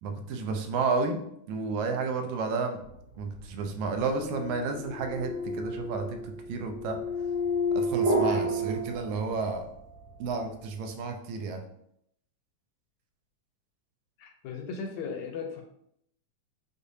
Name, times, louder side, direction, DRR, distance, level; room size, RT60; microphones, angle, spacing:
voice 1, 0.0-1.2 1.5-2.8 3.2-7.0 7.7-9.7 10.2-11.6, right 4 dB, 80° right, 5 dB, 1.9 m, -31 dB
sound 1, 3.1-9.6, equal, 20° right, 1.1 m, -31 dB
voice 2, 8.2-8.7 14.2-15.6, left 5 dB, 75° left, 3 dB, 1.6 m, -37 dB
6.5 x 2.5 x 2.6 m, 0.73 s
omnidirectional pair, 3.4 m